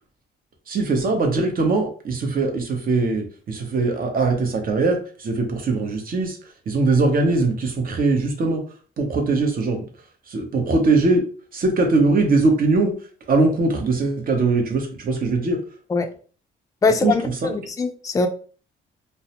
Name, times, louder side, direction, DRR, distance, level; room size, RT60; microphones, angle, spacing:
voice 1, 0.7-6.4 6.7-8.6 9.0-9.8 10.3-11.2 11.5-13.0 13.3-15.6 17.0-17.5, right 3 dB, 45° right, 4 dB, 0.8 m, -21 dB
voice 2, 16.8-18.3, left 4 dB, 15° left, 6 dB, 0.3 m, -22 dB
2.3 x 2.1 x 2.8 m, 0.40 s
cardioid pair, 90°, 20 cm